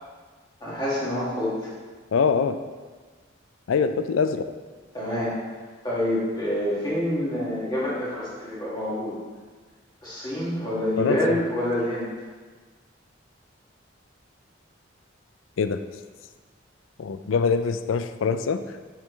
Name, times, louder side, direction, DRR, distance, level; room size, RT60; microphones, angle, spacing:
voice 1, 0.6-1.7 4.9-5.3 5.8-9.2 10.0-12.1, left 1 dB, 20° left, -8 dB, 1.9 m, -27 dB
voice 2, 2.1-2.6 3.7-4.4 11.0-11.4 15.6-15.8 17.0-18.8, left 5 dB, 85° left, 10 dB, 0.4 m, -24 dB
6.6 x 6.0 x 3.1 m, 1.4 s
head